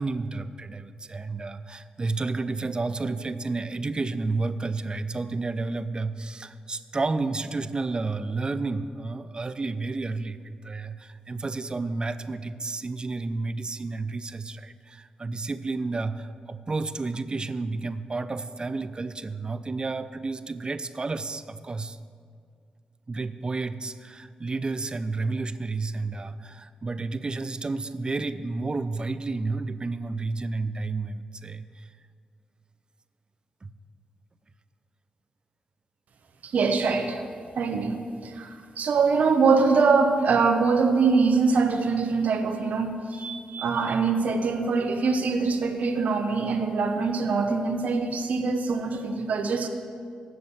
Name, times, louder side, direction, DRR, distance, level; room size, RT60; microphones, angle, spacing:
voice 1, 0.0-22.0 23.1-31.9 33.6-33.7, right 3 dB, 35° right, 13 dB, 0.5 m, -31 dB
voice 2, 36.4-37.2 37.6-38.0 38.2-49.7, right 4 dB, 70° right, 6 dB, 0.9 m, -23 dB
7.7 x 6.9 x 7.9 m, 2.2 s
cardioid pair, 55°, 3 cm